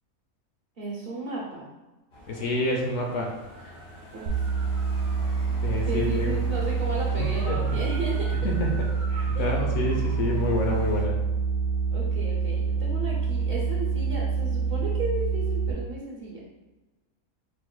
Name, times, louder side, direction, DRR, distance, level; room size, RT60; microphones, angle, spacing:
voice 1, 0.8-1.7 3.6-3.8 4.1-4.5 5.8-8.4 9.3-9.6 11.9-16.5, right 3 dB, 45° right, -4 dB, 1.0 m, -34 dB
sound 1, 2.1-11.0, right 1 dB, 45° left, 1.7 m, -44 dB
voice 2, 2.3-3.4 5.6-6.3 7.5-7.8 8.4-8.7 9.1-11.1, left 2 dB, 65° left, 0 dB, 0.9 m, -28 dB
sound 2, 4.3-15.7, right 5 dB, 80° right, 1.2 m, -26 dB
4.7 x 4.0 x 2.2 m, 1.1 s
omnidirectional pair, 1.5 m